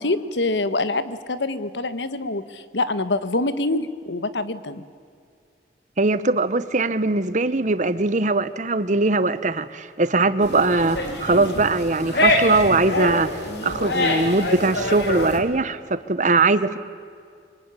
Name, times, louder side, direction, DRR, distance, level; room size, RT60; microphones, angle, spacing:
voice 1, 0.0-4.8, left 2 dB, 90° left, 13 dB, 1.4 m, -25 dB
voice 2, 6.0-13.3 13.6-16.8, right 3 dB, 45° right, 14 dB, 1.1 m, -21 dB
sound 1, 10.4-15.4, left 2 dB, 70° left, 3.9 m, -25 dB
25.5 x 24.0 x 9.8 m, 2.3 s
head